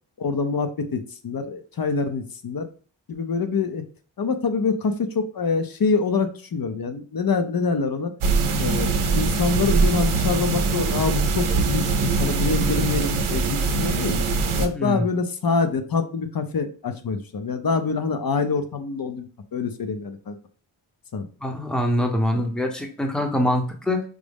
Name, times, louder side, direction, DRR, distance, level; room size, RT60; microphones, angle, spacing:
voice 1, 0.2-2.6 3.1-3.8 4.2-8.1 8.6-14.3 14.6-20.4 21.1-21.3, left 4 dB, 45° left, 8 dB, 0.6 m, -25 dB
sound 1, 8.2-14.7, right 4 dB, 85° right, 0.6 m, -22 dB
voice 2, 14.7-15.1 21.4-24.0, left 1 dB, ahead, 2 dB, 0.7 m, -24 dB
5.0 x 2.0 x 3.4 m, 0.41 s
wide cardioid pair, 70°, 49 cm